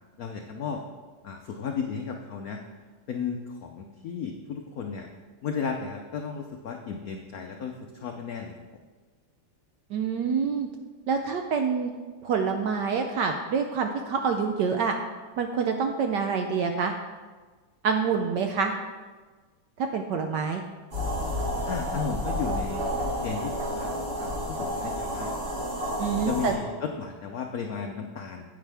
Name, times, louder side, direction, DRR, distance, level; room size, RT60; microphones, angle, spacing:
voice 1, 0.2-0.8 1.2-2.6 3.1-5.1 5.4-8.5 21.7-22.8 23.2-23.9 24.2-25.3 26.1-28.4, left 6 dB, 85° left, 3 dB, 0.8 m, -34 dB
voice 2, 9.9-10.7 11.1-11.9 12.2-15.0 15.4-16.9 17.8-18.7 19.8-20.6 26.0-26.5, right 5 dB, 75° right, 4 dB, 1.0 m, -26 dB
sound 1, 20.9-26.5, equal, 30° right, 2.3 m, -30 dB
9.8 x 9.1 x 3.4 m, 1.4 s
omnidirectional pair, 2.4 m